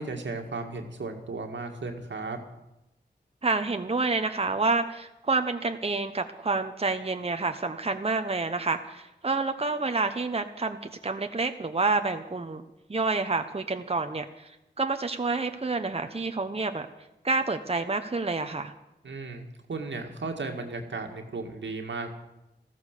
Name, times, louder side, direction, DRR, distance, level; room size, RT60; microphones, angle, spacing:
voice 1, 0.0-2.4 19.0-22.1, right 3 dB, 80° right, 4 dB, 2.1 m, -35 dB
voice 2, 3.4-14.5 14.8-16.9 17.2-18.7, right 3 dB, 35° right, 7 dB, 1.1 m, -28 dB
14.0 x 14.0 x 6.7 m, 0.92 s
cardioid pair, 50°, 19 cm